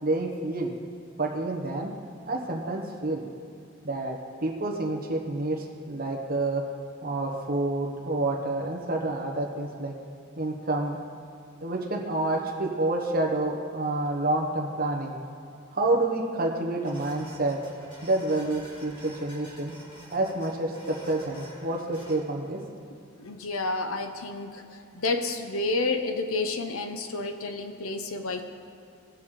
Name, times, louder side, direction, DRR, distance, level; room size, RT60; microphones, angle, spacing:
voice 1, 0.0-0.7 1.2-1.9 2.3-3.2 3.8-6.6 7.0-9.9 10.4-11.0 11.6-15.1 15.7-17.6 18.0-19.7 20.1-22.6, right 2 dB, 45° right, 1 dB, 1.2 m, -28 dB
sound 1, 16.8-22.1, equal, 25° left, 2.3 m, -48 dB
voice 2, 23.2-28.4, left 3 dB, 80° left, 6 dB, 0.9 m, -30 dB
18.5 x 6.4 x 3.9 m, 2.4 s
head